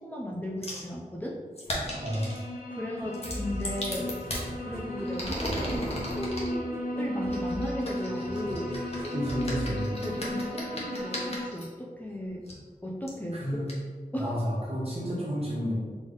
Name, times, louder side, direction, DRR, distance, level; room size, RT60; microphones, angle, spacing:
voice 1, 0.0-1.4 2.7-4.1 4.6-8.8 10.0-12.4 12.8-13.7 14.1-14.4, left 1 dB, 10° left, -3 dB, 0.5 m, -36 dB
sound 1, 0.6-0.9 1.6-2.4 3.1-4.5 5.0-6.5 7.3-11.7 12.5-12.6 13.1-13.2 13.7-13.8, equal, 45° left, 1.2 m, -36 dB
sound 2, 1.9-11.5, left 1 dB, 75° left, 0.6 m, -35 dB
sound 3, 3.0-10.6, equal, 15° right, 1.2 m, -40 dB
voice 2, 9.1-9.9 13.3-13.7 14.2-15.7, equal, 45° right, -5 dB, 1.5 m, -31 dB
4.0 x 3.4 x 3.9 m, 1.5 s
wide cardioid pair, 85°, 15 cm